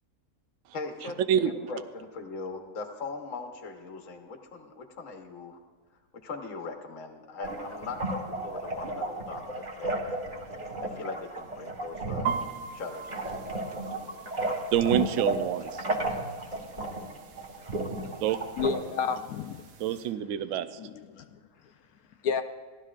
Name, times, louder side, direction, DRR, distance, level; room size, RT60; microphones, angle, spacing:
voice 1, 0.7-5.6 6.2-10.0 10.8-13.5, left 4 dB, 60° left, 4 dB, 1.4 m, -40 dB
sound 1, 7.4-18.8, right 2 dB, 30° right, 1.4 m, -33 dB
sound 2, 12.3-20.1, right 7 dB, 90° right, 1.3 m, -41 dB
voice 2, 14.7-15.9 18.2-18.4 19.8-20.8, right 10 dB, 70° right, 11 dB, 0.9 m, -26 dB
voice 3, 18.6-19.7 20.8-21.2 22.2-22.4, left 6 dB, 80° left, 7 dB, 1.0 m, -31 dB
17.5 x 12.5 x 2.4 m, 1.5 s
omnidirectional pair, 1.5 m